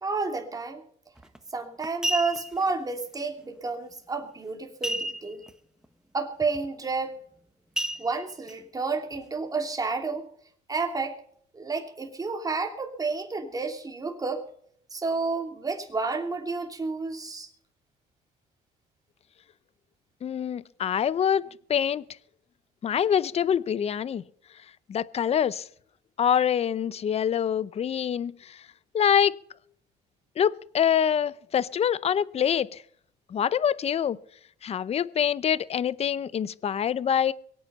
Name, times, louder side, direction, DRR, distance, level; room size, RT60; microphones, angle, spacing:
voice 1, 0.0-0.8 1.5-5.4 6.1-7.2 8.0-10.3 10.7-11.2 11.5-14.5 14.9-17.5, right 4 dB, 20° right, 4 dB, 2.9 m, -30 dB
sound 1, 1.2-1.4 1.8-2.6 4.8-5.5 5.8-5.9 6.4-6.7 7.8-8.5 9.1-9.2, right 1 dB, 5° right, 1.3 m, -31 dB
voice 2, 20.2-22.0 22.8-24.2 24.9-25.7 26.2-28.6 28.9-29.4 30.4-32.8 33.3-34.2 34.6-37.3, left 8 dB, 40° left, 20 dB, 0.6 m, -25 dB
23.0 x 8.8 x 5.6 m, 0.63 s
cardioid pair, 110°, 17 cm